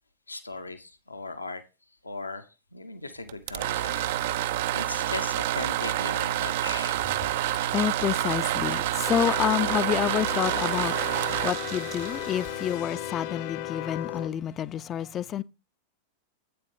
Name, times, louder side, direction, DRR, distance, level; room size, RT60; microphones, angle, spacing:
voice 1, 0.3-1.6 2.0-7.0, left 3 dB, 80° left, 0.7 m, -38 dB
sound 1, 3.3-13.1, right 13 dB, 55° right, 0.3 m, -28 dB
voice 2, 7.7-15.4, left 10 dB, 30° left, 0.4 m, -29 dB
Phone Notifications, 9.1-14.3, left 14 dB, 50° left, 0.7 m, -35 dB
8.2 x 6.8 x 3.7 m
figure-of-eight pair, 90°, 0 cm